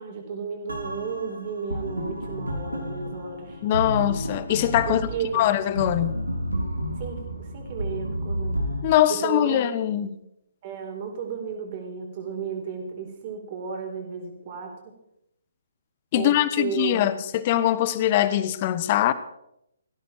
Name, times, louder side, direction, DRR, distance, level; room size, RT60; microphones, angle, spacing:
voice 1, 0.0-3.6 4.8-5.5 7.0-8.7 9.1-9.6 10.6-14.9 16.1-17.0, right 6 dB, 35° right, 4.2 m, -33 dB
sound 1, 0.7-8.8, equal, 85° right, 3.7 m, -31 dB
voice 2, 3.6-5.0 5.3-6.2 8.8-10.2 16.1-19.1, left 12 dB, 30° left, 1.0 m, -22 dB
18.0 x 15.5 x 4.5 m
figure-of-eight pair, 135°, 0 cm